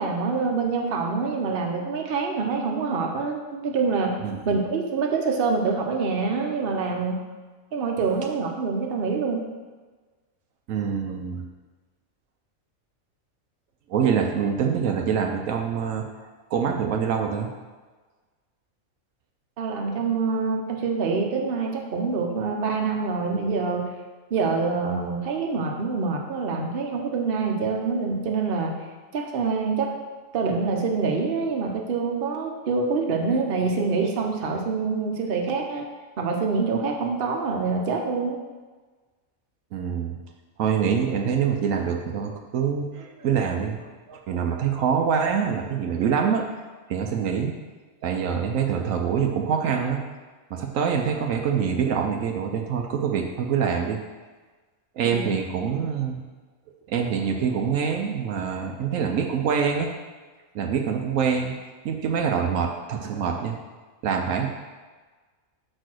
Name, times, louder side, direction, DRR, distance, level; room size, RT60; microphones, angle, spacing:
voice 1, 0.0-4.2 4.4-7.2 7.7-9.5 19.6-23.9 24.3-28.7 29.1-29.9 30.3-35.8 36.2-38.4 55.0-55.3, right 4 dB, 45° right, 2 dB, 0.9 m, -26 dB
voice 2, 10.7-11.4 13.9-16.0 16.5-17.5 39.7-40.2 40.6-46.5 46.9-47.5 48.0-50.0 50.5-54.0 55.0-56.2 56.9-59.9 60.5-61.6 61.8-63.6 64.0-64.5, right 7 dB, 75° right, 3 dB, 1.0 m, -25 dB
5.2 x 4.4 x 6.1 m, 1.3 s
omnidirectional pair, 1.4 m